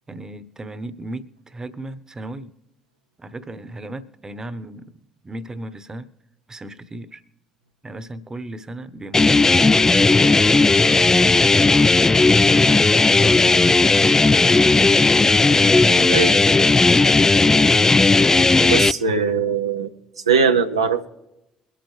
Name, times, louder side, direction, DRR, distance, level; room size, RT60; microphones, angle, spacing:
voice 1, 0.1-2.5 3.2-4.9 5.2-6.1 6.5-7.2 7.8-10.7 11.1-11.9 12.4-15.0 15.5-16.3 18.5-18.9, right 2 dB, 25° right, 15 dB, 1.0 m, -35 dB
sound 1, 9.1-18.9, left 3 dB, 20° left, 0.4 m, -15 dB
voice 2, 16.1-16.4 18.6-19.9 20.3-21.1, right 5 dB, 85° right, 5 dB, 0.7 m, -20 dB
23.0 x 8.7 x 3.3 m, 0.92 s
figure-of-eight pair, 50°, 3 cm